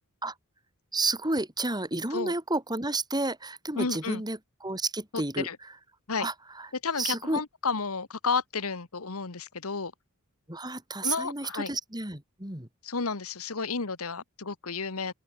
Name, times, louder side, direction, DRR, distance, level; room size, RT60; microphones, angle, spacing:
voice 1, 0.9-5.5 6.2-6.7 7.0-7.4 10.5-12.7, right 2 dB, 20° right, 7.3 m, -31 dB
voice 2, 3.8-4.2 5.4-5.6 6.1-6.3 6.8-9.9 11.0-11.7 12.8-15.1, left 4 dB, 70° left, 1.5 m, -31 dB
head